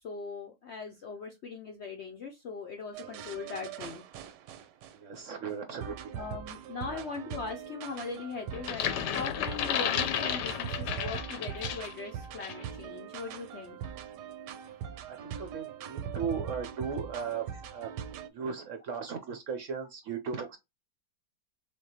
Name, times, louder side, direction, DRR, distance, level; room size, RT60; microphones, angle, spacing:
voice 1, 0.0-4.0 6.1-13.8, left 5 dB, 65° left, 0.6 m, -40 dB
sound 1, 2.9-5.2 5.8-18.3, right 8 dB, 85° right, 1.2 m, -41 dB
voice 2, 4.9-6.3 6.8-7.0 15.1-17.4 17.7-17.9 18.3-20.6, right 6 dB, 65° right, 0.8 m, -37 dB
sound 2, 8.5-12.0 12.4-12.6, left 9 dB, 85° left, 1.2 m, -32 dB
3.6 x 3.4 x 2.8 m
omnidirectional pair, 1.8 m